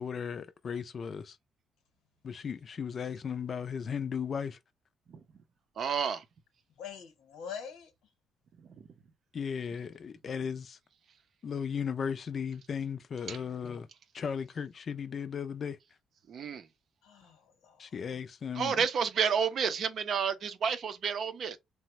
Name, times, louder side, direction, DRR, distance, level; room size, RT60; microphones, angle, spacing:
voice 1, 0.0-1.4 2.2-4.6 9.3-10.8 11.4-13.9 14.1-15.8 17.8-18.8, left 7 dB, 50° left, 0.4 m, -36 dB
voice 2, 5.8-6.2 8.8-8.9 13.3-13.4 16.3-16.7 18.5-21.6, right 7 dB, 60° right, 0.5 m, -30 dB
voice 3, 6.8-7.9 17.0-17.9, left 7 dB, 90° left, 0.9 m, -44 dB
3.3 x 2.1 x 2.9 m
cardioid pair, 90°, 0 cm